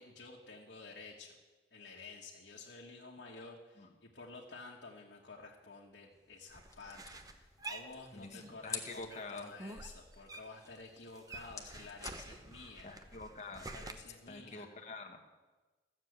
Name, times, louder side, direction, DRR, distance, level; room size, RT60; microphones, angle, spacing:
voice 1, 0.0-1.3 1.7-12.9 13.6-14.7, left 3 dB, 85° left, -3 dB, 1.6 m, -52 dB
sound 1, 6.1-14.6, left 5 dB, 20° left, 1.1 m, -52 dB
sound 2, 6.5-8.6 8.9-10.7 11.0-13.9, right 2 dB, 20° right, 0.8 m, -48 dB
voice 2, 8.1-9.5 12.8-13.7 14.3-15.2, left 3 dB, 40° left, 3 dB, 1.4 m, -47 dB
14.0 x 7.4 x 8.0 m, 1.2 s
head